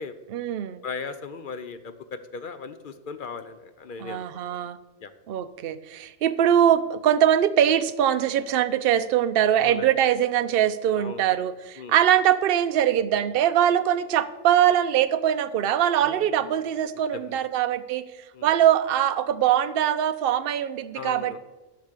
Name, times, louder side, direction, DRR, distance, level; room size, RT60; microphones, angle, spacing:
voice 1, 0.3-0.8 4.0-4.8 5.3-18.1 18.4-21.4, right 10 dB, 60° right, 11 dB, 0.7 m, -22 dB
voice 2, 0.8-4.6 5.0-5.1 9.6-9.9 10.9-11.3 11.8-11.9 16.0-16.3 17.1-17.4 18.3-18.5 20.9-21.4, left 5 dB, 50° left, 10 dB, 0.7 m, -37 dB
10.5 x 5.9 x 6.6 m, 1.2 s
omnidirectional pair, 1.3 m